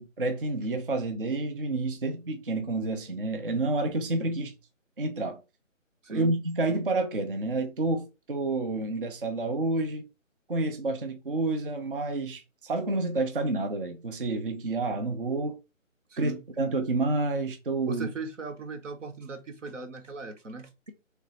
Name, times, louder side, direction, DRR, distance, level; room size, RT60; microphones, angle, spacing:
voice 1, 0.0-4.6 5.0-5.4 6.1-10.1 10.5-15.6 16.2-18.1, right 2 dB, 45° right, 0.6 m, -29 dB
voice 2, 17.9-20.7, right 4 dB, 65° right, 1.1 m, -38 dB
3.2 x 2.7 x 3.9 m
hypercardioid pair, 170°, 40 cm